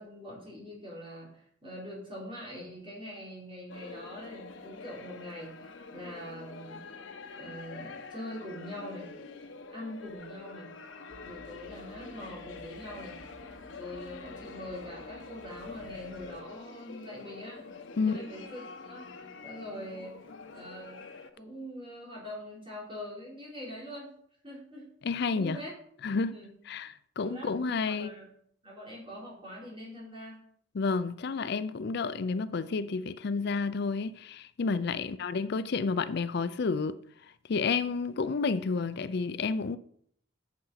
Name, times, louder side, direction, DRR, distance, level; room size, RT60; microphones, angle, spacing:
voice 1, 0.0-6.8 7.3-9.1 9.7-10.7 11.2-13.2 13.7-17.7 17.9-20.2 20.5-24.1 24.4-24.9 25.3-25.7 26.3-26.5 27.2-28.3 28.6-30.4 34.8-35.3, equal, 30° right, 4.6 m, -43 dB
sound 1, 3.7-21.3, left 4 dB, 80° left, 1.0 m, -46 dB
sound 2, 11.1-16.4, right 1 dB, 90° right, 1.8 m, -55 dB
voice 2, 25.0-25.6 26.0-26.3 26.7-28.1 30.7-37.0 37.5-39.8, left 4 dB, 60° left, 0.5 m, -30 dB
8.3 x 7.6 x 5.7 m
head